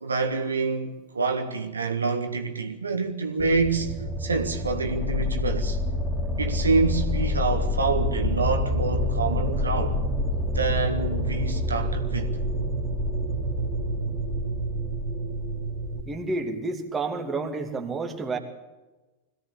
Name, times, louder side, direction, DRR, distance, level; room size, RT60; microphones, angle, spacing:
voice 1, 0.0-3.9 4.2-5.8 6.4-10.0 10.5-12.4, right 4 dB, 75° right, 1.7 m, -27 dB
sound 1, 3.4-16.0, left 1 dB, 10° left, 3.2 m, -27 dB
voice 2, 16.1-18.4, right 3 dB, 15° right, 2.7 m, -30 dB
21.5 x 16.5 x 8.5 m
figure-of-eight pair, 90°, 0 cm